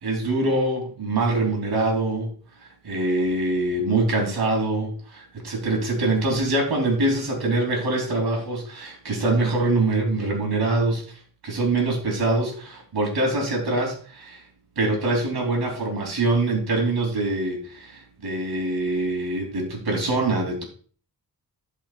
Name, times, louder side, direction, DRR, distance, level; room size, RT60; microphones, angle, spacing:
voice 1, 0.0-2.3 2.8-11.0 11.4-14.4 14.8-20.6, right 2 dB, 80° right, 1 dB, 3.2 m, -24 dB
16.0 x 5.7 x 2.5 m, 0.43 s
wide cardioid pair, 135°, 38 cm